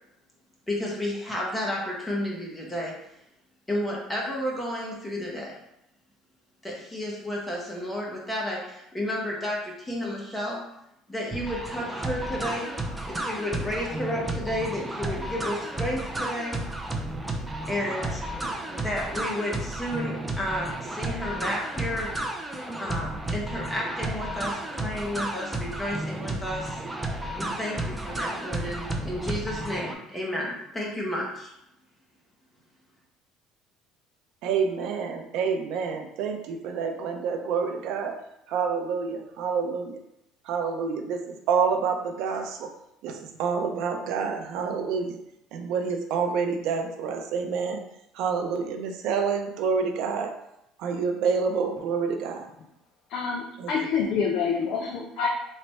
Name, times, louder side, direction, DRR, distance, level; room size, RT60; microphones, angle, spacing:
voice 1, 0.7-3.0 3.7-5.6 6.6-10.6 11.1-12.7 13.1-16.6 17.7-18.2 18.6-22.2 22.8-26.8 27.4-31.5, left 1 dB, 10° left, -3 dB, 0.8 m, -32 dB
sound 1, 11.3-29.9, right 1 dB, 10° right, 0.4 m, -32 dB
voice 2, 34.4-38.1 38.5-40.0 40.5-41.2 41.5-42.7 43.0-43.1 43.4-45.2 45.5-47.8 48.2-50.3 50.8-52.4 53.6-53.7, right 5 dB, 70° right, 4 dB, 0.5 m, -27 dB
voice 3, 53.1-55.3, left 6 dB, 55° left, -1 dB, 0.5 m, -27 dB
3.2 x 2.1 x 4.1 m, 0.82 s
cardioid pair, 125°, 0 cm